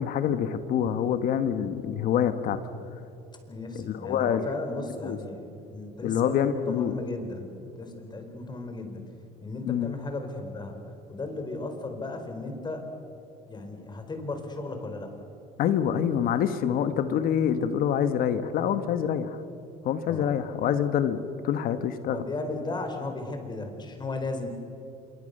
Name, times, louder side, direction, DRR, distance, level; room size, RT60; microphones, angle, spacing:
voice 1, 0.0-2.6 3.8-4.5 5.0-5.2 6.0-7.0 9.6-10.0 15.6-19.4 19.8-21.2 21.4-22.2, left 9 dB, 65° left, 10 dB, 1.6 m, -26 dB
voice 2, 3.5-9.0 9.4-10.8 11.1-12.8 13.5-15.1 20.1-20.3 22.1-24.5, left 2 dB, 25° left, 5 dB, 4.7 m, -35 dB
26.0 x 24.0 x 6.8 m, 2.7 s
cardioid pair, 105°, 16 cm